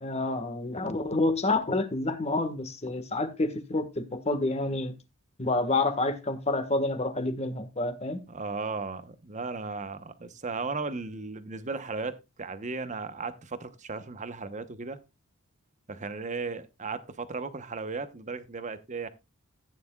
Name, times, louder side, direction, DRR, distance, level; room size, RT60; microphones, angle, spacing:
voice 1, 0.0-4.9 5.4-8.2, left 2 dB, 30° left, 1.5 m, -28 dB
voice 2, 8.3-15.0 15.9-19.1, right 4 dB, 35° right, 0.9 m, -36 dB
15.0 x 9.5 x 2.3 m
head